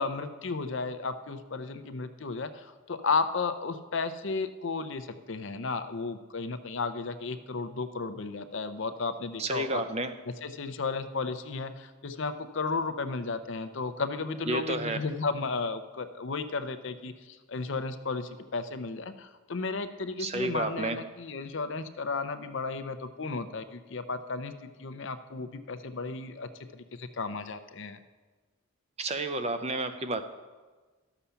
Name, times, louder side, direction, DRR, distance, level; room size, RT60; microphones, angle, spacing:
voice 1, 0.0-9.8 10.4-28.0, left 4 dB, 60° left, 10 dB, 0.6 m, -34 dB
voice 2, 9.4-10.1 14.5-15.0 20.2-21.0 29.0-30.2, right 2 dB, 30° right, 9 dB, 0.5 m, -31 dB
13.0 x 6.9 x 5.7 m, 1.3 s
head